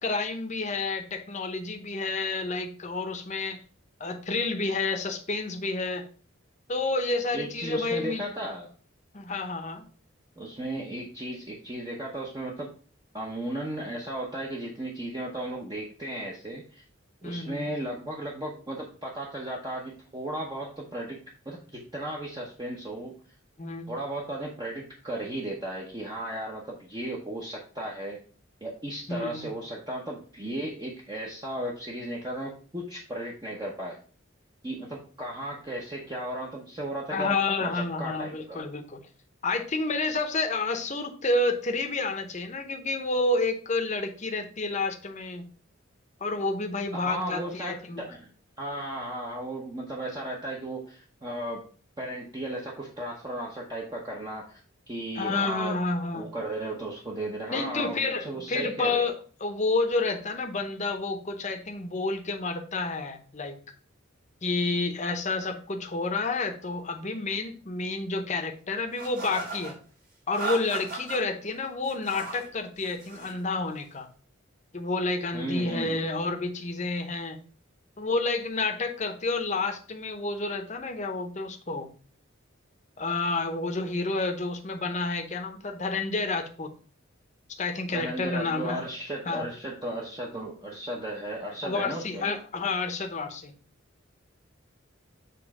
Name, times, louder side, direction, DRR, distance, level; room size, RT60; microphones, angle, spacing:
voice 1, 0.0-3.6 4.0-6.0 6.7-8.2 9.1-9.8 17.2-17.8 23.6-23.9 29.1-29.5 37.1-39.0 39.4-45.4 46.2-48.0 55.2-56.3 57.5-63.6 64.4-69.7 70.3-74.1 74.7-77.4 78.0-81.9 83.0-86.7 87.6-88.8 89.2-89.4 91.6-93.5, left 3 dB, 35° left, 6 dB, 0.8 m, -30 dB
voice 2, 7.3-8.7 10.4-12.7 13.1-16.8 17.2-23.2 23.9-28.2 28.6-34.0 34.6-38.7 46.9-48.3 48.6-51.7 52.0-54.6 54.9-55.8 56.1-59.0 75.3-76.0 87.9-92.3, right 1 dB, 20° right, -3 dB, 0.8 m, -35 dB
sound 1, 69.0-69.7 70.3-71.2 71.8-72.5 72.8-73.4, right 3 dB, 40° right, 1.9 m, -36 dB
7.0 x 3.1 x 4.8 m, 0.41 s
head